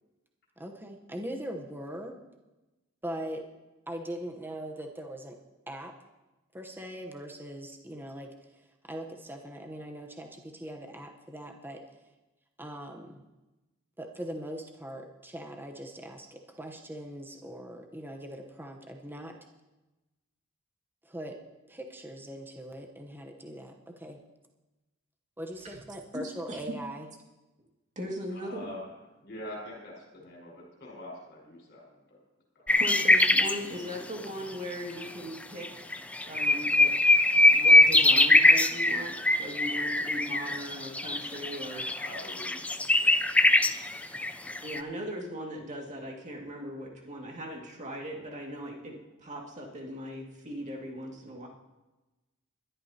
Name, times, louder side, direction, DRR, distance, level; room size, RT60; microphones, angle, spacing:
voice 1, 0.6-2.1 3.0-3.4 3.9-5.4 5.7-5.9 6.5-8.3 8.8-11.8 12.6-13.2 14.0-19.4 21.0-21.4 21.7-24.2 25.4-27.1, right 1 dB, 10° right, 2 dB, 1.0 m, -41 dB
voice 2, 26.1-26.7 28.0-28.7 32.8-35.9 36.2-36.9 37.3-41.9 44.6-51.5, equal, 35° right, 0 dB, 2.2 m, -39 dB
voice 3, 28.3-28.9 29.2-32.2 32.5-32.7 41.8-43.2, left 1 dB, 50° left, -2 dB, 5.2 m, -45 dB
sound 1, 32.7-33.6 35.0-35.1 35.6-35.7 35.9-44.8, left 2 dB, 5° left, 0.4 m, -22 dB
21.5 x 12.5 x 2.9 m, 1.1 s
head